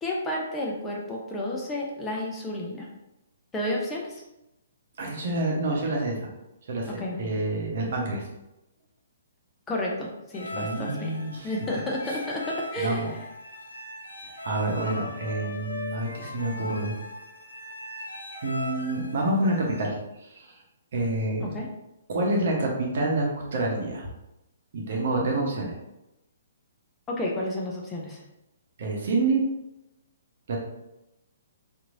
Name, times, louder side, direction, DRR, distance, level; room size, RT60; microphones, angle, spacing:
voice 1, 0.0-2.9 3.5-4.2 7.0-7.3 9.7-11.1 11.4-13.0 21.4-21.7 27.1-28.2, left 1 dB, 15° left, -2 dB, 0.6 m, -31 dB
voice 2, 5.0-6.3 6.7-8.2 10.5-11.5 12.1-12.2 12.8-13.1 14.4-17.0 18.4-20.6 20.9-21.5 22.1-24.1 24.7-25.7 28.8-29.5 30.5-30.6, right 2 dB, 60° right, -1 dB, 0.8 m, -28 dB
sound 1, 10.3-19.9, left 1 dB, 80° left, 0.4 m, -38 dB
3.0 x 2.6 x 2.5 m, 0.91 s
figure-of-eight pair, 130°, 0 cm